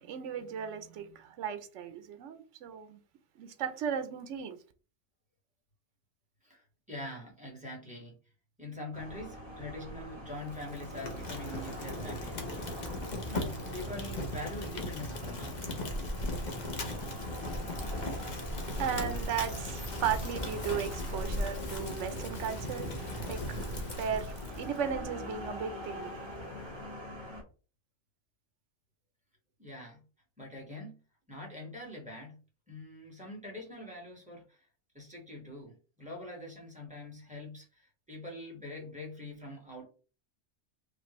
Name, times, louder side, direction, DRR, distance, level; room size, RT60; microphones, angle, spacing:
voice 1, 0.0-3.0 3.4-4.6 18.6-26.4, right 8 dB, 75° right, 1.0 m, -36 dB
voice 2, 6.4-8.2 8.6-12.9 13.3-15.6 29.6-30.0 30.4-31.0 31.3-32.4 32.7-34.7 34.9-39.8, left 1 dB, 5° right, 1.6 m, -44 dB
sound 1, 8.9-27.4, equal, 25° right, 1.2 m, -42 dB
Fire, 10.4-24.8, left 1 dB, 40° left, 0.9 m, -39 dB
5.0 x 2.6 x 3.1 m
omnidirectional pair, 1.3 m